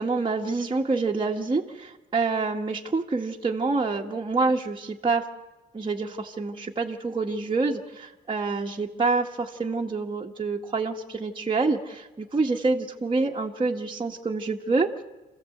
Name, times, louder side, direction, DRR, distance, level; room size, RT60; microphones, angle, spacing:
voice 1, 0.0-5.3 5.7-14.9, right 3 dB, 25° right, -1 dB, 1.7 m, -27 dB
27.0 x 15.0 x 8.0 m, 1.2 s
cardioid pair, 90°, 20 cm